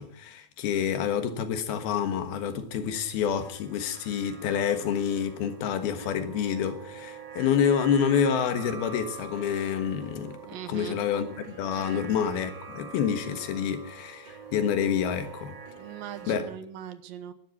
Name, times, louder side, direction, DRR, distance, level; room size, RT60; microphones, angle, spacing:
voice 1, 0.0-10.4 10.7-15.6 16.3-16.5, left 8 dB, 85° left, 3.4 m, -28 dB
sound 1, 1.9-16.4, right 5 dB, 30° right, 2.7 m, -45 dB
voice 2, 10.5-11.0 11.8-12.0 15.8-17.3, right 9 dB, 75° right, 2.7 m, -40 dB
13.5 x 12.0 x 8.4 m
omnidirectional pair, 4.3 m